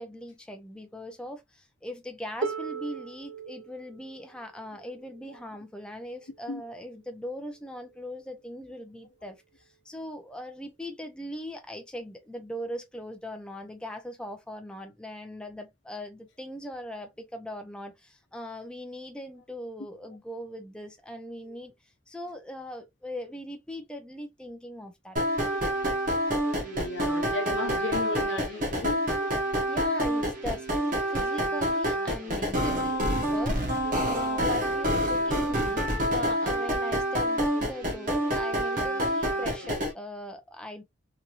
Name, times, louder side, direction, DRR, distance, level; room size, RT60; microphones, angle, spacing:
voice 1, 0.0-9.4 9.8-21.7 22.1-25.2 29.7-40.8, equal, 5° left, 0.4 m, -40 dB
Harp, 2.4-8.2 9.3-9.4, right 5 dB, 65° right, 0.4 m, -40 dB
sound 1, 25.2-39.9, equal, 45° right, 0.9 m, -27 dB
voice 2, 26.6-29.1 39.6-39.7, left 3 dB, 70° left, 0.8 m, -35 dB
2.9 x 2.6 x 2.4 m
head